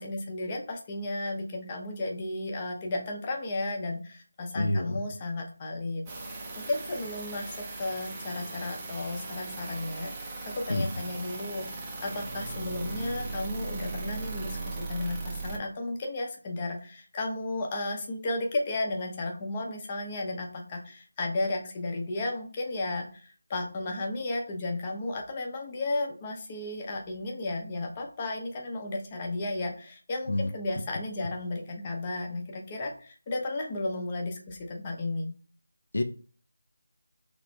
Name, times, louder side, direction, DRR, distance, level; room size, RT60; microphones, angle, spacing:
voice 1, 0.0-6.0 6.6-35.3, left 2 dB, 25° left, 1 dB, 0.8 m, -34 dB
voice 2, 4.5-5.0 10.7-10.9 30.3-30.5 35.9-36.0, left 1 dB, 65° left, 6 dB, 0.5 m, -27 dB
sound 1, 6.1-15.6, right 3 dB, 15° right, 0.6 m, -38 dB
3.3 x 3.0 x 4.0 m, 0.40 s
figure-of-eight pair, 165°, 0 cm